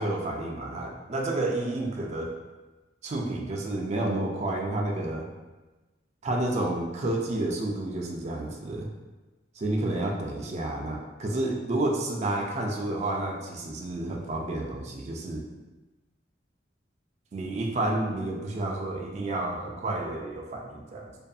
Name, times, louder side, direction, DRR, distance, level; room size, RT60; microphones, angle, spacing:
voice 1, 0.0-2.4 3.0-5.3 6.2-8.9 9.5-15.4 17.3-21.1, right 2 dB, 40° right, 1 dB, 0.3 m, -30 dB
2.6 x 2.4 x 2.3 m, 1.2 s
head